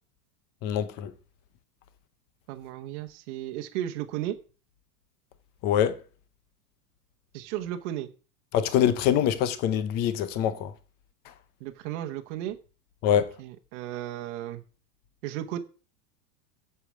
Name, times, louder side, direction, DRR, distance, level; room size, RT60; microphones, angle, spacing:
voice 1, 0.6-1.1 5.6-6.0 8.5-10.7 13.0-13.4, left 10 dB, 20° left, 0.5 m, -24 dB
voice 2, 2.5-4.4 7.3-8.1 11.6-12.6 13.1-14.6 15.2-15.6, right 12 dB, 45° right, 1.1 m, -34 dB
8.1 x 7.0 x 7.5 m
supercardioid pair, 170°, 50 cm